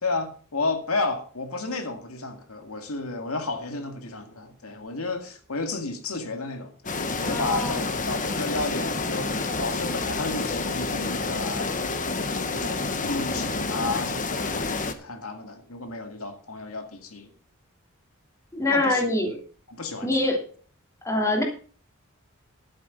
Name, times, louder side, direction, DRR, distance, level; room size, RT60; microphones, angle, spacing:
voice 1, 0.0-12.2 12.5-17.3 18.7-19.1 19.7-20.1, left 3 dB, 90° left, 2.0 m, -32 dB
sound 1, 6.9-14.9, left 3 dB, 40° left, 1.2 m, -29 dB
voice 2, 7.2-7.8 18.5-19.4 20.0-20.4 21.0-21.4, left 2 dB, 15° left, 2.9 m, -24 dB
11.5 x 8.9 x 5.6 m
head